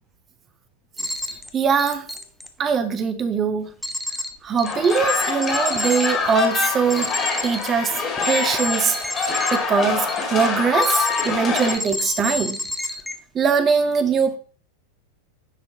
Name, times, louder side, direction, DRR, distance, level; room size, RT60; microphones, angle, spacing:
sound 1, 1.0-1.5 1.8-2.5 3.8-4.3 4.6-9.6 10.1-10.5 10.8-11.3 11.6-13.1, left 2 dB, 5° left, 0.7 m, -29 dB
voice 1, 1.5-2.1 2.6-3.7 4.4-7.2 7.4-12.6 13.3-14.4, right 6 dB, 25° right, 0.9 m, -22 dB
sound 2, 4.6-11.8, left 5 dB, 25° left, 1.9 m, -25 dB
9.9 x 4.4 x 2.8 m
figure-of-eight pair, 90°, 0 cm